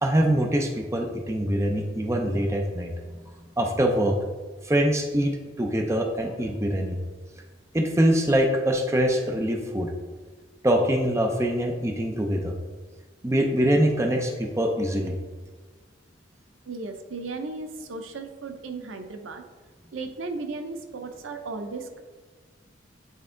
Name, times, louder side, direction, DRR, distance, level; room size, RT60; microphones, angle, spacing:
voice 1, 0.0-3.2 3.6-4.2 4.6-5.3 5.6-7.0 7.7-9.9 10.6-12.6 13.2-15.2, equal, 15° right, 3 dB, 0.5 m, -24 dB
voice 2, 16.7-19.4 19.9-22.0, right 3 dB, 85° right, 7 dB, 0.6 m, -35 dB
8.4 x 3.3 x 3.7 m, 1.4 s
head